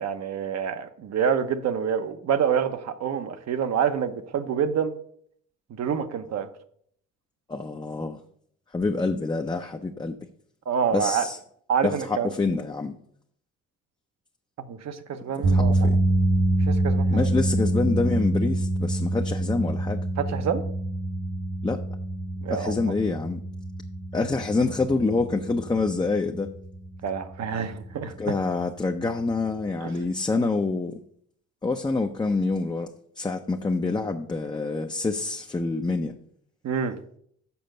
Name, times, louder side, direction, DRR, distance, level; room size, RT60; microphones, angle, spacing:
voice 1, 0.0-5.0 5.7-6.5 10.7-11.3 11.7-12.3 14.7-15.9 16.7-17.3 20.2-20.6 22.4-22.7 27.0-28.1 29.8-29.9 36.6-37.0, right 7 dB, 60° right, 9 dB, 0.9 m, -27 dB
voice 2, 7.5-8.2 8.7-10.1 10.9-11.4 11.8-12.9 15.4-16.0 17.1-20.0 21.6-21.8 22.5-23.4 24.1-26.6 28.2-31.0 31.6-32.9 33.2-36.2, left 3 dB, 15° left, 4 dB, 0.5 m, -26 dB
sound 1, 15.4-29.7, right 1 dB, 85° right, 3.7 m, -26 dB
7.0 x 5.1 x 6.5 m, 0.65 s
cardioid pair, 90°, 30 cm